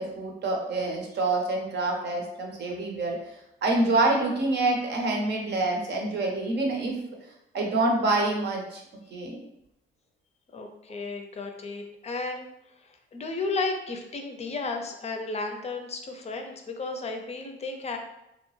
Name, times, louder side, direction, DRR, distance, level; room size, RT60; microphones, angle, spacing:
voice 1, 0.0-7.0 7.5-8.8 9.1-9.4, right 2 dB, 60° right, 0 dB, 0.8 m, -26 dB
voice 2, 10.5-12.5 12.8-18.0, left 3 dB, 35° left, 4 dB, 0.5 m, -33 dB
2.8 x 2.1 x 3.1 m, 0.85 s
cardioid pair, 90°, 20 cm